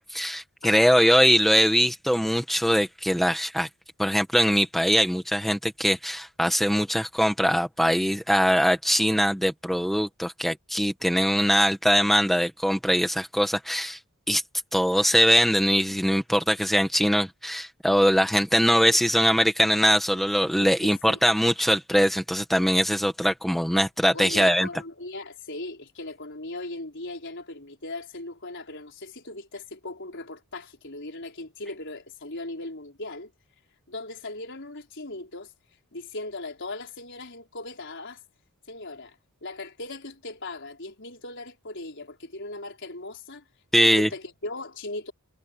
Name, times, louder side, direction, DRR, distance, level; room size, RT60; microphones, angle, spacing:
voice 1, 0.0-3.7 4.0-14.0 14.3-14.4 14.7-24.7 43.7-44.1, equal, ahead, 1.7 m, -22 dB
voice 2, 0.6-1.1 18.8-19.0 20.6-21.2 24.1-33.3 33.9-35.5 35.9-38.2 38.7-39.2 39.4-43.4 43.8-45.1, left 2 dB, 55° left, 5.2 m, -38 dB
head